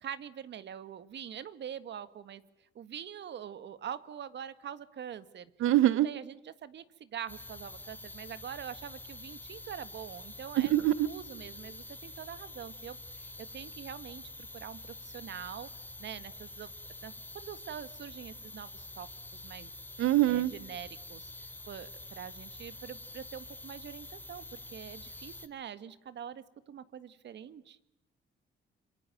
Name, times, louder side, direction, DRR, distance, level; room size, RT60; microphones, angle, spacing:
voice 1, 0.0-2.4 2.8-5.5 6.0-10.7 11.1-14.2 14.5-15.7 16.0-16.7 17.0-19.7 20.3-21.3 21.7-27.8, right 9 dB, 65° right, 14 dB, 1.8 m, -44 dB
voice 2, 5.6-6.1 10.6-11.1 20.0-20.5, right 14 dB, 90° right, 18 dB, 1.0 m, -24 dB
sound 1, 7.3-25.5, left 2 dB, 10° left, 3.0 m, -47 dB
26.5 x 24.5 x 9.1 m, 0.83 s
cardioid pair, 90°, 20 cm